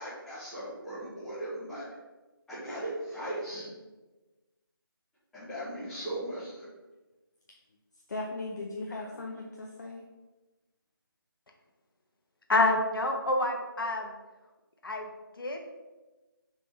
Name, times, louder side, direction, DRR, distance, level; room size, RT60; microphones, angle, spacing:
voice 1, 0.0-1.8 2.5-3.7 5.3-6.7 8.9-9.2, right 1 dB, ahead, -14 dB, 0.5 m, -38 dB
voice 2, 8.1-10.0, left 2 dB, 50° left, 0 dB, 0.5 m, -38 dB
voice 3, 12.5-14.1 14.8-15.1 15.4-15.6, left 2 dB, 70° left, 2 dB, 0.8 m, -27 dB
3.4 x 3.4 x 4.0 m, 1.2 s
figure-of-eight pair, 165°, 12 cm